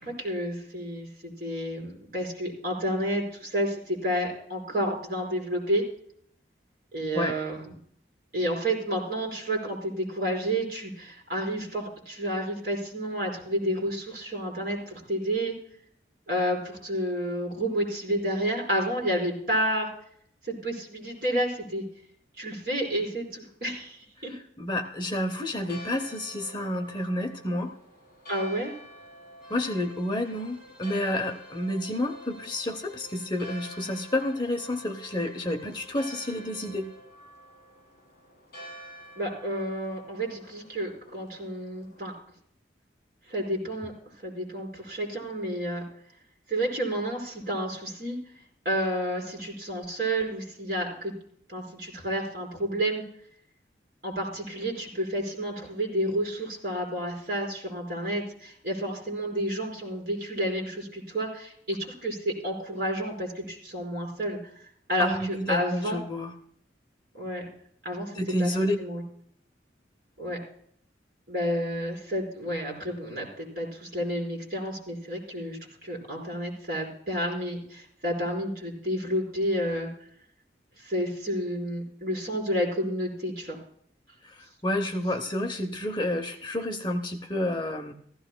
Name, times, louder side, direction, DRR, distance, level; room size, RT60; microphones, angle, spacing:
voice 1, 0.0-5.8 6.9-7.7 8.3-15.5 16.3-19.9 20.5-21.8 22.4-24.3 28.3-28.7 39.2-42.1 43.3-43.9 44.2-45.8 46.5-48.2 48.6-51.1 51.5-53.0 54.0-64.4 64.9-66.0 67.1-67.4 67.8-68.1 68.4-68.5 68.8-69.0 70.2-70.4 71.3-79.9 80.8-83.6, equal, 50° right, -1 dB, 4.3 m, -30 dB
voice 2, 24.3-27.7 29.5-36.9 65.0-66.3 68.1-68.8 84.3-87.9, left 1 dB, 25° left, 4 dB, 0.8 m, -30 dB
Church bell, 25.5-42.2, equal, 50° left, 6.0 m, -48 dB
Bowed string instrument, 29.4-37.1, left 2 dB, 5° right, 3.7 m, -52 dB
15.0 x 14.5 x 2.2 m, 0.64 s
head